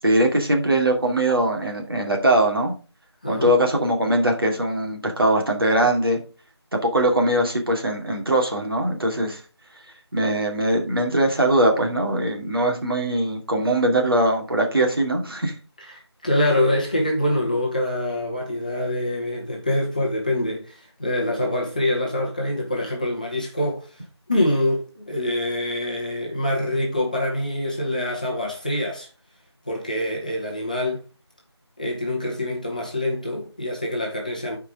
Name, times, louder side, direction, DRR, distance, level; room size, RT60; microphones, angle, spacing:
voice 1, 0.0-2.7 3.3-6.2 6.7-9.4 10.1-15.5, right 1 dB, 55° right, 2.5 m, -21 dB
voice 2, 15.8-24.0 24.3-29.1 29.7-31.0 31.8-34.6, left 1 dB, 20° left, 1.0 m, -25 dB
11.5 x 4.8 x 3.6 m
figure-of-eight pair, 175°, 14 cm